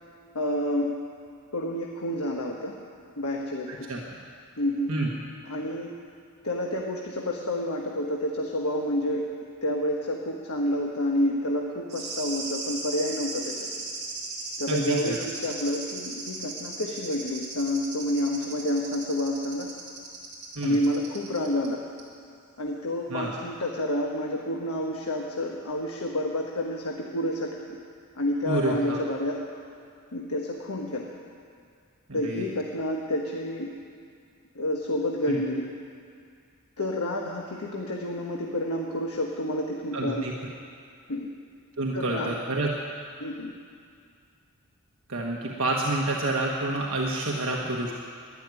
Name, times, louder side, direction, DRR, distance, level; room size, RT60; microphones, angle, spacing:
voice 1, 0.3-0.9 1.5-2.7 3.2-3.9 4.6-4.9 5.4-5.9 6.4-9.3 9.6-13.6 14.6-19.7 20.6-21.8 22.6-27.8 28.2-29.4 30.1-31.1 32.1-33.7 34.5-35.7 36.8-40.3 41.1-41.3 41.9-42.3 43.2-43.5, left 1 dB, 90° left, 0 dB, 1.2 m, -29 dB
voice 2, 3.7-4.0 4.9-5.1 14.7-15.2 20.5-20.8 23.1-23.3 28.4-29.0 32.1-32.5 35.3-35.4 39.9-40.3 41.8-42.7 45.1-47.9, right 2 dB, 70° right, -2 dB, 1.4 m, -28 dB
sound 1, 11.9-21.7 22.0-22.1, right 3 dB, 30° right, 2.8 m, -37 dB
12.5 x 10.5 x 9.6 m, 2.3 s
head